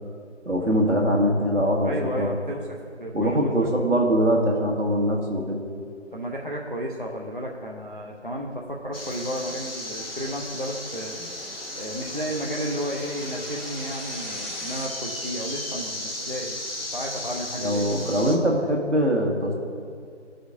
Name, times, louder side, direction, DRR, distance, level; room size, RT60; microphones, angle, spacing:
voice 1, 0.4-2.3 3.0-5.6 17.6-19.5, equal, 75° right, 1 dB, 1.5 m, -22 dB
voice 2, 1.8-3.8 6.1-11.2 11.8-16.6 16.9-17.8, equal, 45° right, -2 dB, 0.4 m, -33 dB
sound 1, 8.7-14.8, equal, ahead, 0.6 m, -46 dB
sound 2, 8.9-18.4, left 1 dB, 50° left, 0.8 m, -35 dB
14.5 x 5.0 x 2.6 m, 2.2 s
figure-of-eight pair, 180°, 36 cm